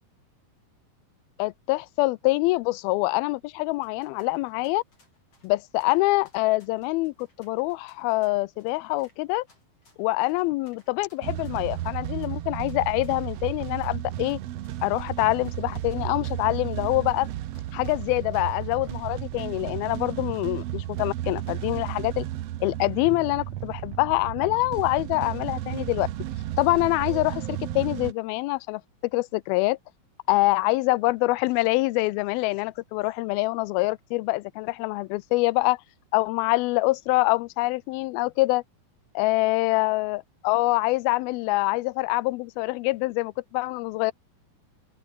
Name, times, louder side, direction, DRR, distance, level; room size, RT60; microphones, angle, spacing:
voice 1, 1.4-4.8 5.4-9.4 10.0-14.4 14.8-17.3 17.7-22.3 22.6-26.1 26.6-28.8 29.1-29.8 30.3-35.8 36.1-38.6 39.2-44.1, left 21 dB, 90° left, 2.5 m, -25 dB
sound 1, 3.7-21.7, left 3 dB, 40° left, 8.3 m, -66 dB
sound 2, 11.2-28.1, right 13 dB, 80° right, 1.4 m, -33 dB
open air
omnidirectional pair, 4.2 m